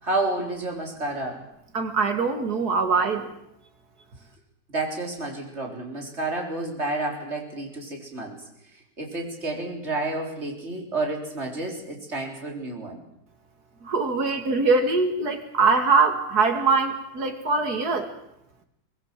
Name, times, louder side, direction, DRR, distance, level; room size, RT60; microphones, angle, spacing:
voice 1, 0.0-1.5 4.7-13.0, right 2 dB, 45° right, 1 dB, 4.2 m, -30 dB
voice 2, 1.7-3.3 13.8-18.1, right 4 dB, 75° right, 6 dB, 2.9 m, -22 dB
23.5 x 20.5 x 7.5 m, 0.77 s
omnidirectional pair, 1.7 m